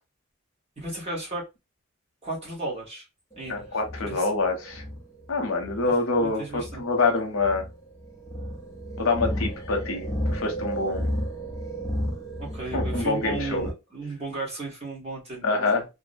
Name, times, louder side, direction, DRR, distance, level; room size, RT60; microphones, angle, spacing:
voice 1, 0.8-1.5 2.2-3.1 3.3-4.3 6.2-6.9 12.4-15.8, right 3 dB, 30° right, -3 dB, 1.0 m, -35 dB
sound 1, 3.3-13.7, equal, 15° left, 0.5 m, -33 dB
voice 2, 3.5-4.8 5.3-7.6 9.0-11.1 12.7-13.7 15.4-15.8, left 3 dB, 70° left, 4 dB, 0.7 m, -26 dB
2.6 x 2.0 x 2.5 m, 0.25 s
head